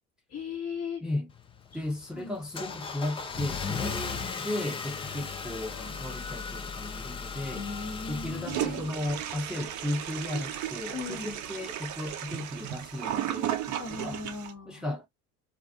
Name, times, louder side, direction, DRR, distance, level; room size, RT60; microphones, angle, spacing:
voice 1, 0.3-1.0 1.7-1.8 2.1-2.8 7.3-8.9 10.9-11.3 13.8-14.9, left 5 dB, 35° left, 1.0 m, -38 dB
voice 2, 1.0-1.3 1.7-7.7 8.1-14.2 14.7-15.1, left 1 dB, ahead, 0.7 m, -35 dB
Car / Engine starting, 1.3-9.5, left 5 dB, 15° left, 0.3 m, -37 dB
Toilet flush, 8.5-14.5, right 11 dB, 40° right, 0.6 m, -34 dB
2.4 x 2.3 x 2.6 m
figure-of-eight pair, 55°, 44 cm